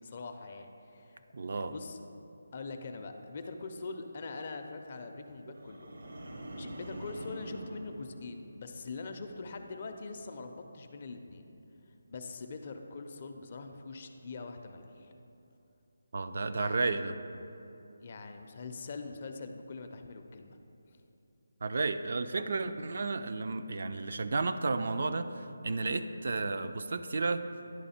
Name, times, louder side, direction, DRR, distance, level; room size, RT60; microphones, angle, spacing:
voice 1, 0.0-1.2 1.6-2.0 2.5-5.9 6.5-11.5 11.8-15.1 16.6-17.1 18.0-20.6, left 3 dB, 35° left, 5 dB, 0.4 m, -43 dB
voice 2, 1.3-1.7 16.1-17.1 21.6-27.4, right 3 dB, 55° right, 9 dB, 0.3 m, -32 dB
sound 1, 5.5-8.9 9.3-9.7, right 1 dB, 70° right, 0.8 m, -45 dB
10.5 x 3.5 x 4.2 m, 2.8 s
figure-of-eight pair, 170°, 0 cm